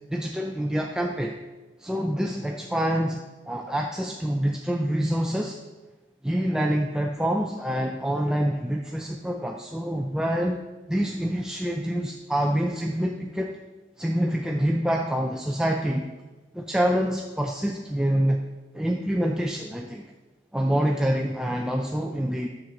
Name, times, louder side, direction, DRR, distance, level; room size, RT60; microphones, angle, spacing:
voice 1, 0.1-1.4 1.8-5.6 6.2-10.6 10.9-13.6 14.0-16.1 16.5-18.4 18.7-20.0 20.5-22.5, equal, 5° right, 1 dB, 0.4 m, -26 dB
10.5 x 7.4 x 3.8 m, 1.2 s
head